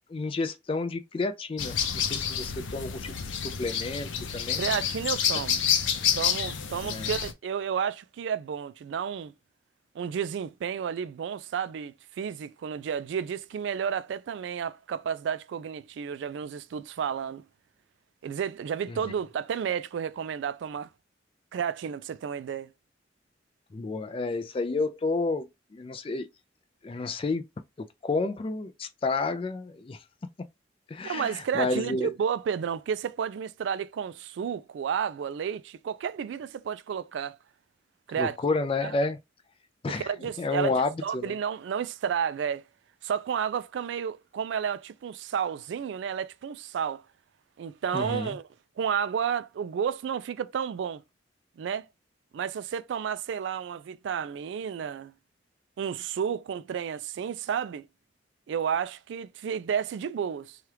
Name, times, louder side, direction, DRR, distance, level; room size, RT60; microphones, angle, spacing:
voice 1, 0.1-4.6 6.8-7.1 18.9-19.0 23.7-25.5 25.7-26.3 26.8-27.4 27.8-30.0 30.9-32.1 38.2-39.2 39.8-40.1 40.4-41.3 47.9-48.3, left 3 dB, 30° left, 0.3 m, -30 dB
sound 1, 1.6-7.3, left 8 dB, 90° left, 0.5 m, -29 dB
voice 2, 4.6-5.6 6.2-9.3 10.0-17.4 18.2-20.9 21.5-22.7 31.0-37.4 38.1-38.4 38.8-38.9 39.9-40.7 41.0-42.6 43.0-47.0 47.6-48.5 48.8-51.0 51.6-51.9 52.3-55.1 55.8-57.9 58.5-60.6, right 7 dB, 70° right, 0.3 m, -31 dB
2.9 x 2.3 x 3.2 m
head